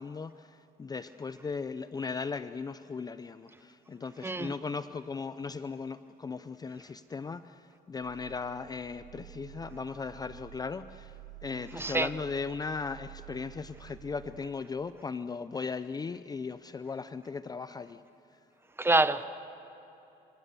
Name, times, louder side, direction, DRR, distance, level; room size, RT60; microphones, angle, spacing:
voice 1, 0.0-11.1 11.4-18.0, left 5 dB, 25° left, 13 dB, 0.5 m, -37 dB
voice 2, 4.2-4.5 11.7-12.1 18.8-19.2, right 2 dB, 15° right, 13 dB, 0.9 m, -26 dB
sound 1, 8.0-14.5, right 14 dB, 65° right, 2.1 m, -50 dB
27.5 x 26.0 x 6.9 m, 3.0 s
cardioid pair, 110°, 17 cm